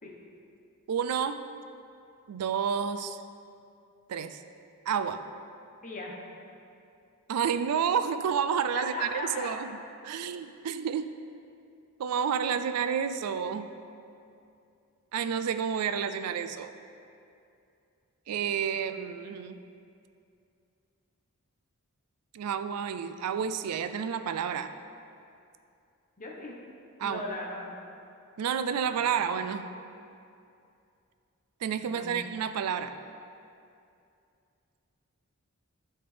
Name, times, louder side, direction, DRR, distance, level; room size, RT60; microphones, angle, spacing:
voice 1, 0.9-1.4 2.3-3.2 4.1-4.4 4.9-5.2 7.3-9.7 10.0-11.1 12.0-13.7 15.1-16.7 18.3-19.6 22.3-24.7 27.0-27.2 28.4-29.7 31.6-33.0, right 7 dB, 85° right, 11 dB, 0.4 m, -30 dB
voice 2, 5.8-6.1 8.7-9.5 26.2-26.5 27.0-27.7 31.8-32.2, left 2 dB, 35° left, -2 dB, 1.0 m, -38 dB
12.0 x 4.3 x 3.4 m, 2.6 s
head